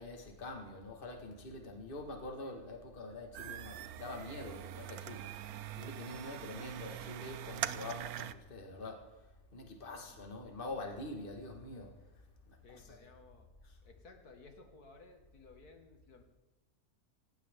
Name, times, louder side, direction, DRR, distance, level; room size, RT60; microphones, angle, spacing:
voice 1, 0.0-13.0 13.6-13.8, left 2 dB, 35° left, 1.9 m, -46 dB
sound 1, 3.3-8.3, right 11 dB, 75° right, 1.2 m, -43 dB
voice 2, 12.6-13.5 13.8-16.2, left 3 dB, 80° left, 2.4 m, -58 dB
18.0 x 16.5 x 3.7 m
omnidirectional pair, 1.6 m